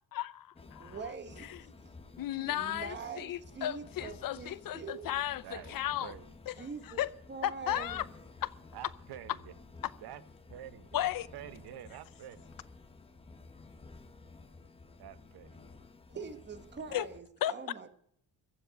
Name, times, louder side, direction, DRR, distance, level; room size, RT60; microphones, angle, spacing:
voice 1, 0.1-1.0 1.5-1.6 2.2-6.1 6.5-6.7 7.0-7.1 7.4-8.1 8.4-8.5 10.9-11.3 16.9-17.1 17.4-17.5, left 13 dB, 60° left, 0.7 m, -34 dB
sound 1, 0.6-17.2, left 3 dB, 15° left, 0.9 m, -53 dB
voice 2, 0.8-1.5 2.4-5.1 6.6-7.0 7.3-8.0 16.1-17.9, right 5 dB, 30° right, 1.3 m, -43 dB
voice 3, 5.4-6.3 8.7-9.5 10.0-10.2 10.5-12.5 15.0-15.6, right 11 dB, 75° right, 1.0 m, -48 dB
15.0 x 7.7 x 9.1 m
cardioid pair, 180°, 38 cm